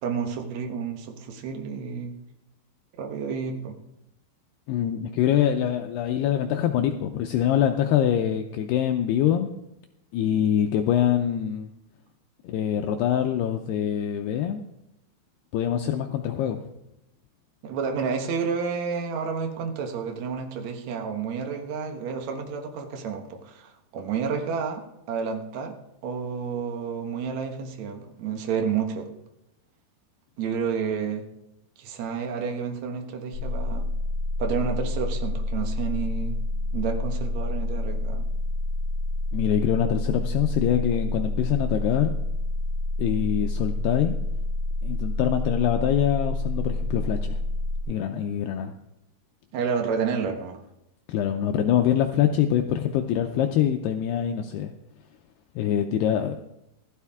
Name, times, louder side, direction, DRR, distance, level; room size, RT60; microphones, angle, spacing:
voice 1, 0.0-2.1 3.0-3.7 17.6-25.7 26.0-29.1 30.4-31.2 31.8-33.9 34.4-36.4 36.7-38.3 49.5-50.6, right 6 dB, 75° right, 4 dB, 1.6 m, -30 dB
voice 2, 4.7-9.5 10.1-11.7 12.4-14.6 15.5-16.6 39.3-42.1 43.0-44.2 44.8-47.4 47.9-48.7 51.1-54.7 55.6-56.4, left 10 dB, 80° left, 5 dB, 2.4 m, -24 dB
sound 1, 33.3-47.8, left 2 dB, 50° right, 1.2 m, -28 dB
15.5 x 12.5 x 3.6 m, 0.88 s
omnidirectional pair, 5.2 m